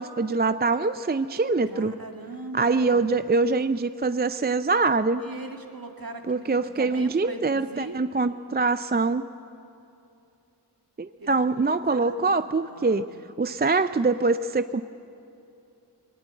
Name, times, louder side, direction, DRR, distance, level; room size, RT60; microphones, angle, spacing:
voice 1, 0.0-1.9 2.5-5.2 6.3-9.2 11.0-13.0 13.4-14.8, right 3 dB, 25° right, 11 dB, 0.4 m, -24 dB
voice 2, 1.7-3.2 5.2-8.0 11.2-13.3, right 2 dB, 55° right, 3 dB, 2.1 m, -41 dB
21.0 x 18.0 x 8.4 m, 2.7 s
wide cardioid pair, 60°, 41 cm